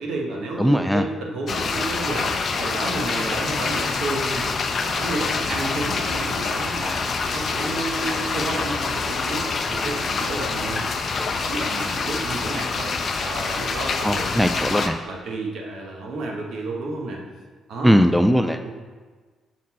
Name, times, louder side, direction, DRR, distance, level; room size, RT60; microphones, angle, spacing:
voice 1, 0.0-4.5 4.8-7.0 7.3-12.9 13.2-14.5 15.1-17.2 17.7-17.9 18.6-18.7, right 2 dB, 75° right, 0 dB, 1.2 m, -31 dB
voice 2, 0.6-1.0 14.0-15.0 17.8-18.6, equal, ahead, 7 dB, 0.3 m, -19 dB
sound 1, 1.5-14.9, left 4 dB, 50° left, 0.5 m, -26 dB
6.2 x 4.2 x 4.2 m, 1.4 s
cardioid pair, 90°, 0 cm